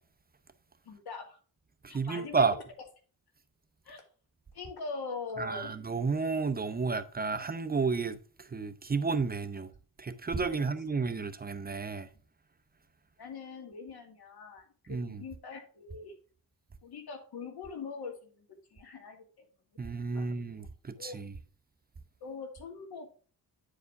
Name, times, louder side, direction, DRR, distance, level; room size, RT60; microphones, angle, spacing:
voice 1, 0.9-1.4 1.9-2.4 3.8-4.0 4.5-5.7 10.5-10.7 13.2-16.1 16.8-19.4 20.0-20.3 21.0-21.2 22.2-23.1, left 4 dB, 85° left, 2.3 m, -42 dB
voice 2, 1.8-2.5 5.4-9.7 10.0-12.1 14.9-15.2 19.8-21.3, right 4 dB, 25° right, 0.6 m, -32 dB
9.4 x 4.9 x 3.7 m
wide cardioid pair, 125°, 37 cm